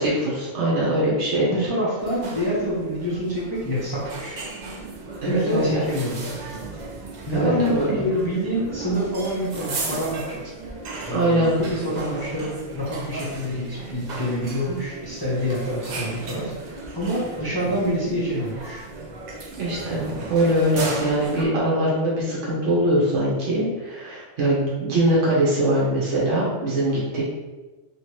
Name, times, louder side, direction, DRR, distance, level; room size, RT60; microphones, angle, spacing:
voice 1, 0.0-1.7 5.2-5.8 7.3-8.0 11.1-11.5 19.6-27.2, right 1 dB, 65° right, -6 dB, 1.2 m, -22 dB
voice 2, 1.5-4.5 5.2-6.5 7.3-10.4 11.0-18.8, equal, 25° left, -7 dB, 0.6 m, -27 dB
sound 1, 2.0-21.5, right 3 dB, 80° right, 0.4 m, -35 dB
3.1 x 2.9 x 3.1 m, 1.2 s
omnidirectional pair, 1.4 m